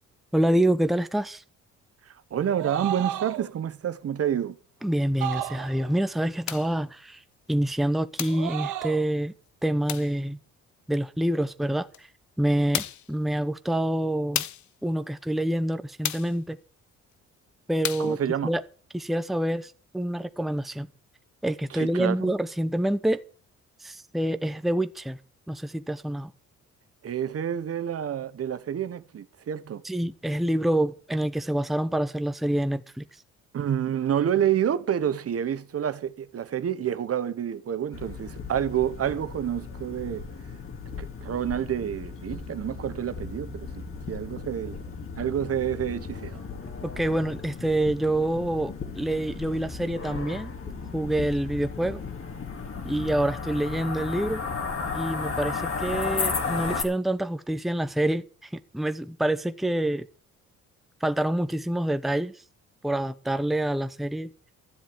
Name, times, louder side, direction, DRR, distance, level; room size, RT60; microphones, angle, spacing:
voice 1, 0.3-1.4 4.8-7.2 7.5-9.3 9.6-10.4 10.9-12.1 12.4-14.4 14.8-16.6 17.7-18.2 18.4-18.6 18.9-20.9 21.4-23.2 23.8-25.2 25.5-26.3 29.8-33.0 46.8-50.5 50.9-52.0 52.8-54.4 54.9-60.1 61.0-62.3 62.8-64.3, right 1 dB, ahead, 0.8 m, -27 dB
voice 2, 2.0-4.6 18.0-18.5 21.7-22.3 27.0-29.8 33.5-40.3 41.0-44.8 45.2-46.4, right 9 dB, 50° right, 1.2 m, -28 dB
sound 1, 2.4-3.5 5.2-6.0 8.3-9.1, right 13 dB, 90° right, 1.2 m, -33 dB
sound 2, 6.5-6.8 8.2-8.5 9.9-10.2 11.9-12.0 12.7-13.1 14.3-14.7 16.0-16.4 17.8-18.2, left 12 dB, 70° left, 1.0 m, -32 dB
sound 3, 37.9-56.8, left 5 dB, 45° left, 3.1 m, -35 dB
13.0 x 7.5 x 8.6 m
cardioid pair, 90°, 30 cm